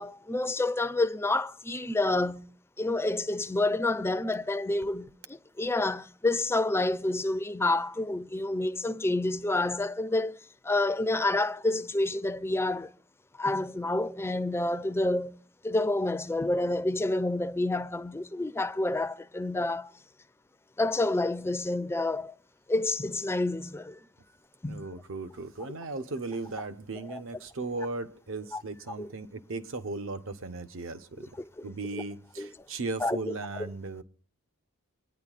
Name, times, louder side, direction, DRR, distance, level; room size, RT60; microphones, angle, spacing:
voice 1, 0.0-2.5 2.8-10.4 10.6-12.9 13.4-15.4 15.6-19.9 20.8-22.3 22.7-24.0 24.6-24.9 27.0-27.2 28.5-28.6 29.0-29.1 31.6-31.7 32.4-32.5 33.0-33.3, left 2 dB, 10° left, 0.4 m, -28 dB
voice 2, 24.7-31.3 31.6-34.0, right 3 dB, 65° right, 0.9 m, -37 dB
25.0 x 9.9 x 2.5 m
head